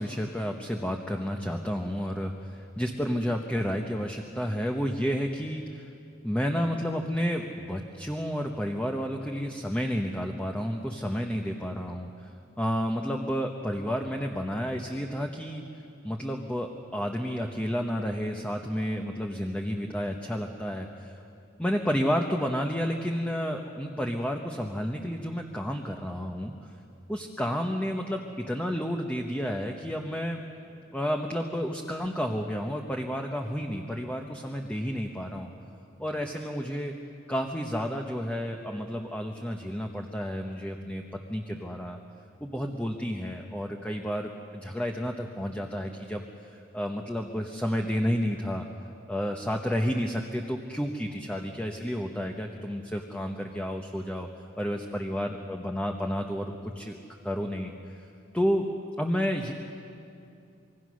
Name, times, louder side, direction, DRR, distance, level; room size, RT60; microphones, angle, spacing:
voice 1, 0.0-5.9 6.2-12.3 12.6-15.6 16.0-21.1 21.6-26.5 27.1-30.4 30.9-35.5 36.0-36.9 37.3-41.0 41.3-42.0 42.4-46.3 46.7-48.7 49.1-54.3 54.6-57.0 57.2-57.7 58.3-58.7 59.0-59.5, equal, 5° left, 2 dB, 1.0 m, -31 dB
26.0 x 22.5 x 6.4 m, 2.5 s
head